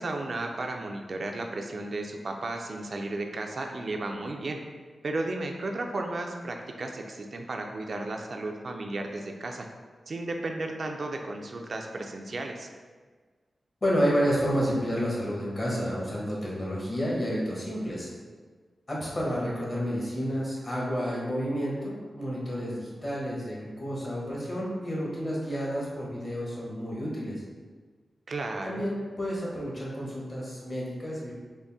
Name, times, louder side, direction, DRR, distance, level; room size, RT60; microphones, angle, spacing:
voice 1, 0.0-4.6 5.0-9.7 10.1-12.7 28.3-28.8, right 2 dB, 60° right, 3 dB, 0.3 m, -34 dB
voice 2, 13.8-18.1 18.9-27.4 28.6-31.3, equal, 40° left, -5 dB, 1.3 m, -30 dB
3.9 x 2.1 x 3.5 m, 1.5 s
cardioid pair, 70°, 0 cm